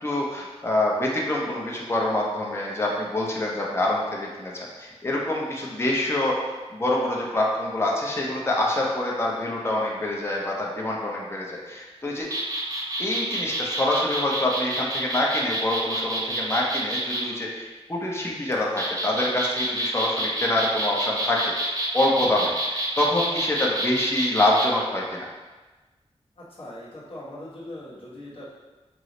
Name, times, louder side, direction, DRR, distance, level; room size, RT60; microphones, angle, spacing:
voice 1, 0.0-6.3 6.7-12.3 13.0-25.3, left 1 dB, 20° left, -3 dB, 0.6 m, -26 dB
sound 1, 12.2-17.2 18.5-24.7, right 1 dB, 30° right, 0.5 m, -28 dB
voice 2, 26.4-28.5, left 1 dB, 55° left, -8 dB, 1.3 m, -40 dB
4.7 x 2.0 x 3.8 m, 1.2 s
wide cardioid pair, 125°, 11 cm